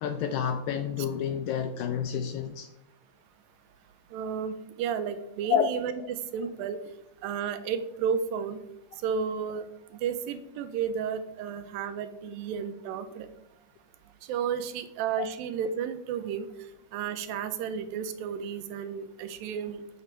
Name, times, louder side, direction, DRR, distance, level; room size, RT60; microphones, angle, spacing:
voice 1, 0.0-2.7 5.5-5.7 6.0-6.1, left 8 dB, 85° left, 7 dB, 1.7 m, -29 dB
voice 2, 4.1-5.9 6.3-6.8 7.2-8.6 9.0-9.7 10.0-13.3 14.3-16.5 16.9-19.8, right 7 dB, 85° right, 10 dB, 2.5 m, -32 dB
8.2 x 6.9 x 4.4 m, 0.84 s
omnidirectional pair, 4.1 m